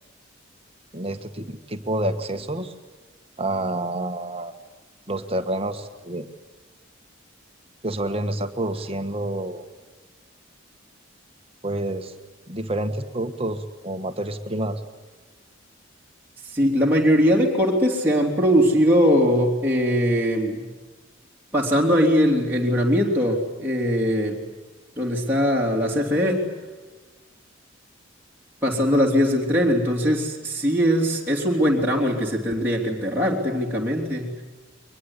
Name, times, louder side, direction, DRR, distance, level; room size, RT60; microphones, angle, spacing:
voice 1, 0.9-2.7 3.4-4.5 5.1-6.3 7.8-9.6 11.6-12.1 12.5-14.8, right 1 dB, 30° right, 7 dB, 1.5 m, -28 dB
voice 2, 16.5-20.7 21.5-24.4 25.0-26.4 28.6-34.3, equal, 10° right, -4 dB, 3.2 m, -21 dB
23.0 x 21.0 x 9.8 m, 1.3 s
head